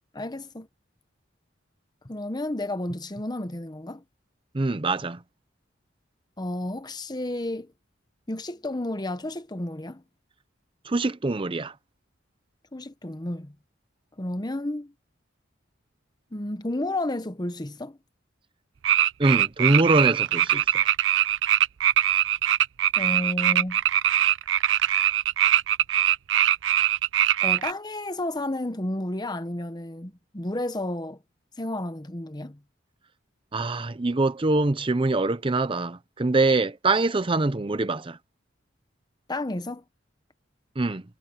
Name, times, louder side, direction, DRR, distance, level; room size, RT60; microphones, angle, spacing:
voice 1, 0.1-0.7 2.0-4.0 6.4-7.7 8.3-10.0 12.7-13.5 14.2-14.9 16.3-18.0 23.0-23.8 27.4-31.2 31.6-32.6 39.3-39.8, left 1 dB, 20° left, 1.0 m, -31 dB
voice 2, 4.5-5.2 10.8-11.7 19.2-20.8 33.5-38.2 40.8-41.0, right 2 dB, 25° right, 0.6 m, -24 dB
sound 1, 18.8-27.7, right 12 dB, 75° right, 0.5 m, -22 dB
head